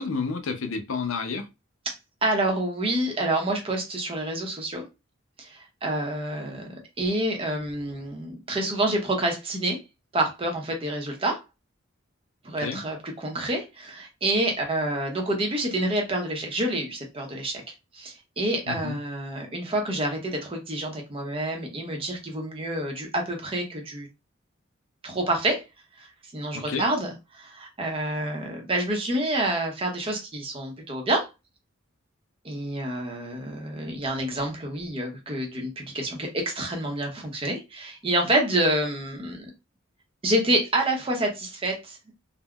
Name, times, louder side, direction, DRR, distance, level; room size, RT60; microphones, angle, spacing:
voice 1, 0.0-1.5 12.6-12.8 18.7-19.0 26.5-26.9, left 4 dB, 75° left, 7 dB, 0.5 m, -30 dB
voice 2, 2.2-4.8 5.4-9.8 10.1-11.4 12.4-17.6 17.9-24.1 25.0-25.6 26.0-31.3 32.4-39.5 40.2-42.0, right 1 dB, 25° right, 2 dB, 0.7 m, -28 dB
3.6 x 2.1 x 2.2 m, 0.25 s
head